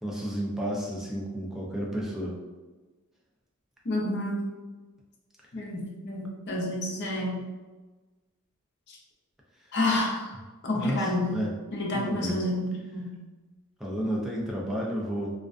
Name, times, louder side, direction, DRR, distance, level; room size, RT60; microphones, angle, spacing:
voice 1, 0.0-2.4 9.6-9.7 10.7-11.5 11.9-12.4 13.8-15.3, equal, ahead, -4 dB, 0.3 m, -32 dB
voice 2, 3.8-4.5 5.5-7.5 8.9-9.0 9.7-10.3 10.6-11.4 11.7-13.2, left 1 dB, 50° left, -3 dB, 0.6 m, -29 dB
2.3 x 2.2 x 2.4 m, 1.2 s
head